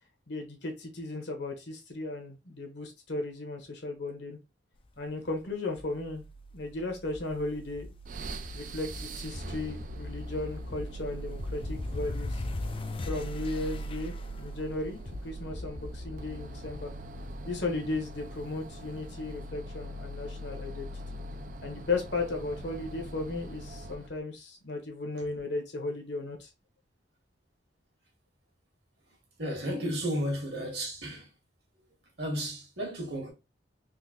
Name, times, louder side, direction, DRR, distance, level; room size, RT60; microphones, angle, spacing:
voice 1, 0.3-4.4 5.0-6.2 6.5-7.9 8.5-12.5 13.1-16.9 17.4-21.2 21.6-26.5, left 3 dB, 65° left, 1.1 m, -35 dB
sound 1, 5.8-18.9, equal, 30° left, 0.3 m, -40 dB
sound 2, 8.0-24.2, right 1 dB, 45° right, 0.3 m, -43 dB
voice 2, 29.4-31.3 32.2-33.3, equal, 60° right, 1.5 m, -33 dB
3.7 x 2.7 x 2.8 m
head